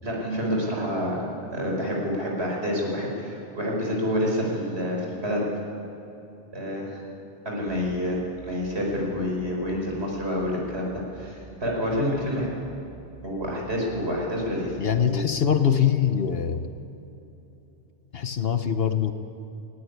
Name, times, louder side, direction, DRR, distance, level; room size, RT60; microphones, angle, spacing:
voice 1, 0.0-1.3 1.5-5.4 6.5-7.0 7.5-12.6 13.2-14.8 15.0-15.2, equal, 65° right, -2 dB, 5.5 m, -28 dB
sound 1, 7.7-15.2, right 6 dB, 25° right, 6.0 m, -49 dB
voice 2, 14.8-16.7 18.1-19.1, left 8 dB, 60° left, 9 dB, 1.1 m, -23 dB
19.5 x 16.0 x 10.0 m, 3.0 s
omnidirectional pair, 1.2 m